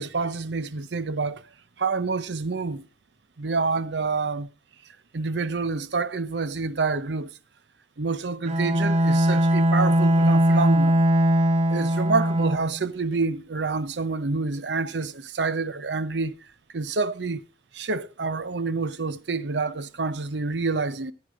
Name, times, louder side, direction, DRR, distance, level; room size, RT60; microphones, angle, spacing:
voice 1, 0.0-1.4 1.8-2.9 3.4-4.5 5.1-7.3 8.0-11.0 11.7-16.3 16.7-17.4 17.7-21.1, right 4 dB, 80° right, 0.7 m, -27 dB
Bowed string instrument, 8.5-12.8, equal, 40° right, 0.9 m, -20 dB
13.5 x 9.3 x 3.7 m
head